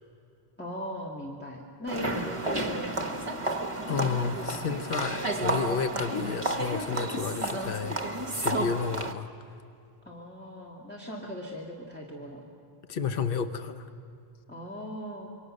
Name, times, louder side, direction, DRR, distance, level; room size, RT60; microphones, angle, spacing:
voice 1, 0.6-3.2 10.1-12.4 14.5-15.3, equal, 10° left, -4 dB, 2.1 m, -39 dB
sound 1, 1.9-9.1, right 2 dB, 30° right, 1.2 m, -31 dB
voice 2, 3.9-8.0 8.3-9.3 12.9-13.9, left 6 dB, 60° left, 9 dB, 1.1 m, -31 dB
27.5 x 23.0 x 6.5 m, 2.6 s
omnidirectional pair, 1.1 m